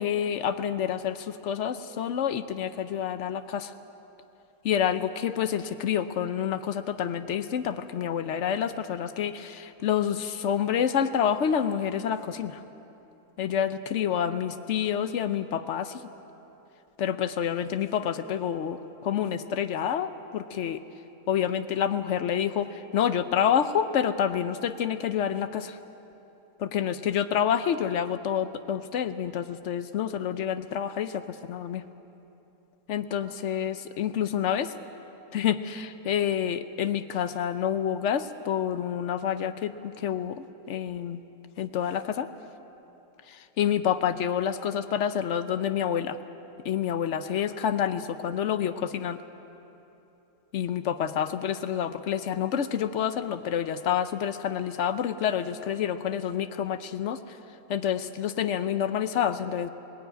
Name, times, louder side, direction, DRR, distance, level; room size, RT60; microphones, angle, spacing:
voice 1, 0.0-3.7 4.6-12.6 13.4-16.1 17.0-20.8 21.3-25.8 26.6-31.8 32.9-34.7 35.3-41.2 41.6-42.3 43.2-46.2 46.6-49.2 50.5-57.4 57.7-59.7, left 9 dB, 70° left, 10 dB, 0.6 m, -28 dB
19.5 x 17.0 x 9.2 m, 3.0 s
omnidirectional pair, 2.0 m